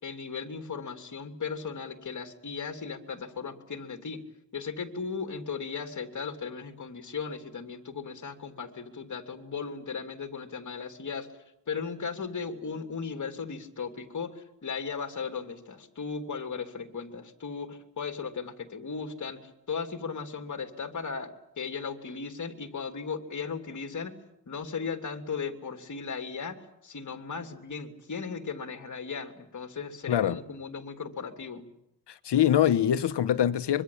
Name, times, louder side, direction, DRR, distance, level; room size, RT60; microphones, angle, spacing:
voice 1, 0.0-4.2 4.5-11.3 11.7-24.1 24.5-31.7, left 5 dB, 45° left, 3.1 m, -36 dB
voice 2, 30.1-30.4 32.1-33.8, left 10 dB, 80° left, 1.3 m, -24 dB
25.0 x 23.5 x 8.7 m
wide cardioid pair, 125°, 41 cm